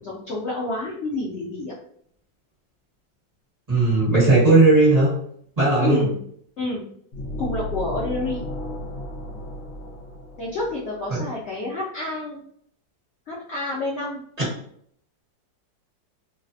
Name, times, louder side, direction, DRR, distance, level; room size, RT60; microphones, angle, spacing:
voice 1, 0.0-1.7 5.8-6.1 6.6-6.8 7.4-8.4 10.4-12.4 13.3-14.2, left 2 dB, 85° left, -5 dB, 0.6 m, -28 dB
voice 2, 3.7-5.1 5.6-6.1 11.1-11.2, right 3 dB, 25° right, -9 dB, 1.0 m, -16 dB
sound 1, 7.1-10.9, equal, 60° left, 0.9 m, -33 dB
3.1 x 2.0 x 2.6 m, 0.65 s
omnidirectional pair, 2.0 m